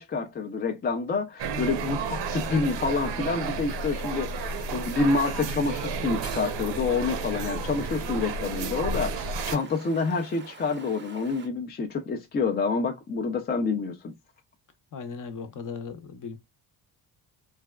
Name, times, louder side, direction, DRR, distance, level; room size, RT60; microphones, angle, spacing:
voice 1, 0.0-14.1, left 4 dB, 25° left, 0.4 m, -28 dB
sound 1, 1.4-9.6, right 4 dB, 65° right, 0.7 m, -32 dB
Stream, 2.4-11.5, right 5 dB, 25° right, 0.5 m, -47 dB
voice 2, 14.9-16.4, left 5 dB, 45° left, 0.7 m, -37 dB
3.3 x 2.2 x 2.2 m
cardioid pair, 85°, 46 cm